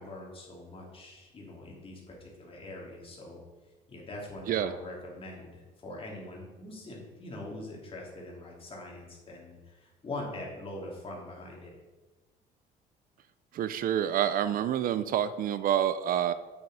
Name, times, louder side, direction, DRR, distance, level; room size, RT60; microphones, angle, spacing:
voice 1, 0.0-3.4 3.9-11.7, left 2 dB, 35° left, -2 dB, 3.0 m, -43 dB
voice 2, 13.5-16.3, right 10 dB, 55° right, 14 dB, 0.5 m, -28 dB
8.4 x 7.0 x 4.9 m, 1.2 s
cardioid pair, 110°, 17 cm